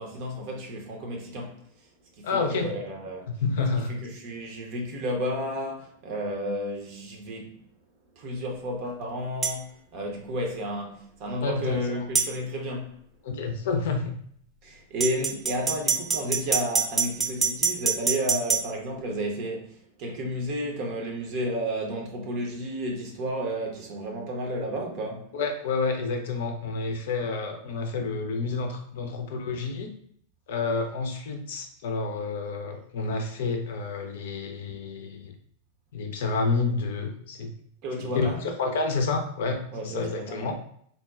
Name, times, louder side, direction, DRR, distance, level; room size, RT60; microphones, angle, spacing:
voice 1, 0.0-1.6 2.2-3.3 3.9-7.6 8.2-13.0 14.6-25.3 37.8-38.5 39.7-40.5, equal, 45° right, 0.7 m, -32 dB
voice 2, 2.2-2.7 3.4-3.9 11.4-12.0 13.2-14.2 25.3-29.9 30.5-35.3 35.9-37.5 38.1-40.5, left 4 dB, 55° left, 0.5 m, -29 dB
sound 1, 9.4-9.6 12.2-12.3 15.0-18.6, right 5 dB, 15° right, 0.4 m, -25 dB
3.9 x 2.2 x 2.3 m
figure-of-eight pair, 90°, 0 cm